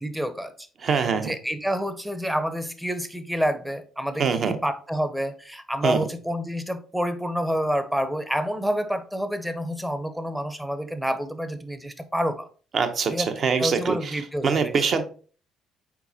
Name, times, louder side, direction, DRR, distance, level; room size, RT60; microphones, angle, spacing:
voice 1, 0.0-0.7 0.9-12.5 13.1-13.3 13.6-15.0, equal, 5° right, 0.6 m, -28 dB
voice 2, 0.8-1.3 4.2-4.6 5.8-6.1 12.7-15.0, right 5 dB, 50° right, 0.7 m, -24 dB
4.6 x 4.0 x 2.7 m
cardioid pair, 90°, 0 cm